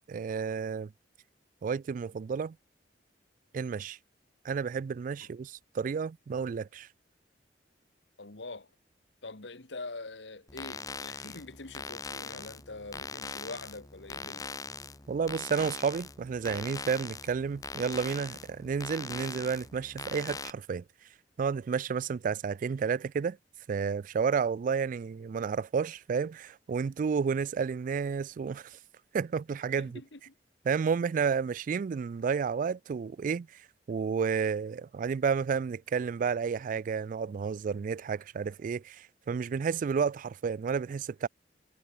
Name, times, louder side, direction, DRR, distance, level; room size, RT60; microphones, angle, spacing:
voice 1, 0.1-0.9 1.6-2.6 3.5-4.0 4.4-6.9 15.1-20.8 21.4-23.4 23.7-28.8 29.1-30.0 30.7-33.5 33.9-41.3, right 6 dB, 50° right, 0.3 m, -31 dB
voice 2, 8.2-8.7 9.2-14.4 29.8-30.3, left 3 dB, 80° left, 1.9 m, -44 dB
sound 1, 10.5-20.5, left 4 dB, 20° left, 1.2 m, -41 dB
head